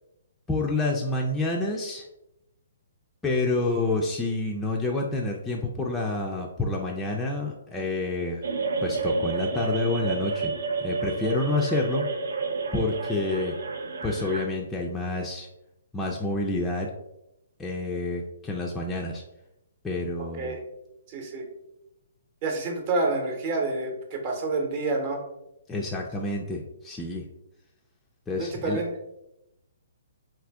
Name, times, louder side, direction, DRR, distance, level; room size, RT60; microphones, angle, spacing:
voice 1, 0.5-2.1 3.2-8.5 8.8-10.5 10.8-12.1 12.7-13.5 14.0-15.5 15.9-16.9 17.6-19.2 19.8-20.5 25.7-27.2 28.3-28.8, left 2 dB, 10° left, -2 dB, 0.3 m, -28 dB
sound 1, 8.4-14.4, right 4 dB, 75° right, 0.5 m, -30 dB
voice 2, 21.1-21.5 22.4-25.2 28.4-28.9, right 3 dB, 40° right, 2 dB, 0.8 m, -28 dB
2.7 x 2.5 x 3.4 m, 0.87 s
hypercardioid pair, 135°, 0 cm